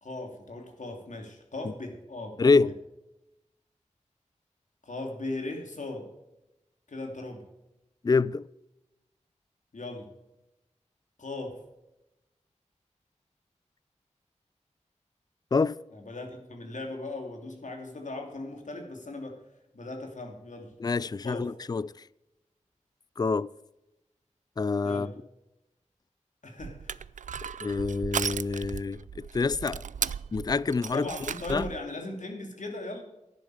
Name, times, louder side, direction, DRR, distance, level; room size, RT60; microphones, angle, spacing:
voice 1, 0.0-2.5 4.8-6.1 6.9-7.5 9.7-10.1 11.2-11.5 15.9-19.4 19.7-20.7 21.2-21.5 24.8-25.1 26.4-27.0 27.4-27.6 30.9-33.0, left 2 dB, 75° left, 3.0 m, -38 dB
voice 2, 2.4-2.7 8.0-8.5 15.5-15.8 20.8-21.9 23.2-23.5 24.6-25.1 27.6-29.8 30.3-31.1 31.5-31.7, left 4 dB, 30° left, 0.4 m, -26 dB
Crushing, 26.6-31.8, right 7 dB, 90° right, 0.4 m, -36 dB
13.0 x 11.0 x 5.0 m
cardioid pair, 45°, 13 cm